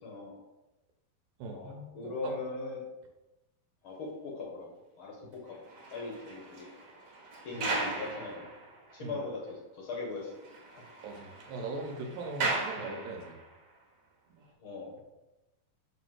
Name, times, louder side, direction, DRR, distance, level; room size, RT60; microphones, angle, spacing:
voice 1, 0.0-0.4 1.4-2.8 3.8-4.7 5.0-5.2 5.4-5.6 5.9-6.7 7.4-8.6 8.9-10.3 14.6-14.9, left 3 dB, 55° left, -2 dB, 1.5 m, -39 dB
voice 2, 1.4-2.3 7.5-7.7 9.0-9.2 11.0-13.4, right 3 dB, 80° right, 2 dB, 2.4 m, -40 dB
sound 1, 5.5-9.2 9.5-9.6 9.9-10.0 10.3-13.6 14.3-14.5, right 2 dB, 60° right, 2.2 m, -38 dB
7.5 x 3.1 x 5.8 m, 1.0 s
omnidirectional pair, 4.1 m